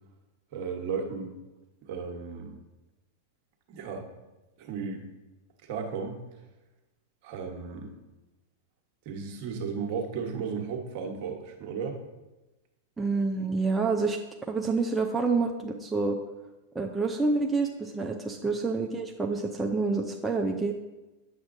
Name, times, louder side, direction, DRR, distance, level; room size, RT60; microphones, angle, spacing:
voice 1, 0.5-1.3 1.8-2.6 3.7-4.0 4.6-5.1 5.6-6.2 7.2-7.9 9.0-12.0 18.4-18.5, right 5 dB, 55° right, 2 dB, 1.2 m, -34 dB
voice 2, 13.0-14.2 14.5-16.2 16.7-20.7, right 3 dB, 10° right, 1 dB, 0.5 m, -28 dB
7.9 x 7.0 x 2.6 m, 1.1 s
hypercardioid pair, 125°, 0 cm